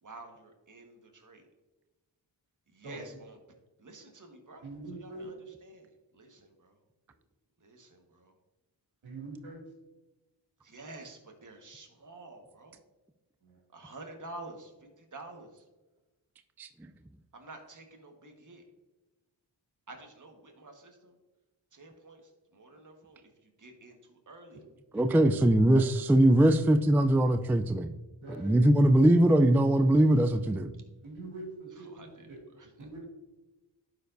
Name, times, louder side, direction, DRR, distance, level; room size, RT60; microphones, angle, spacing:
voice 1, 0.0-1.4 2.7-3.4 3.8-4.7 5.0-5.3 5.6-6.8 7.6-8.3 10.6-12.8 13.7-15.6 17.3-18.6 19.9-21.2 21.7-24.6 31.8-32.3 32.5-32.7, right 2 dB, 40° right, 3 dB, 1.5 m, -50 dB
voice 2, 4.6-5.3 9.0-9.6 13.4-13.6 24.9-25.8 26.2-26.4 28.2-28.6 31.0-32.4 32.8-33.1, right 2 dB, 85° right, -2 dB, 2.4 m, -44 dB
voice 3, 24.9-27.9 28.4-30.7, right 1 dB, 5° right, 9 dB, 0.3 m, -22 dB
11.5 x 4.8 x 2.6 m, 1.1 s
cardioid pair, 45°, 47 cm